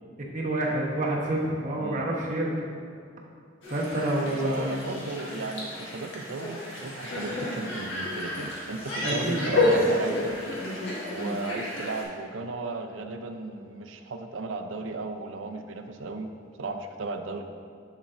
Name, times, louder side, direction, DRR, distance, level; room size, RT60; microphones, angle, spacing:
voice 1, 0.3-2.6 3.7-4.9 8.9-9.9, right 1 dB, 40° right, -3 dB, 1.1 m, -28 dB
voice 2, 1.8-2.1 4.3-10.4 11.1-16.3 16.6-17.4, right 3 dB, 85° right, 6 dB, 0.5 m, -35 dB
sound 1, 3.6-12.0, left 1 dB, 90° left, 1.6 m, -30 dB
7.2 x 7.1 x 2.6 m, 2.3 s
head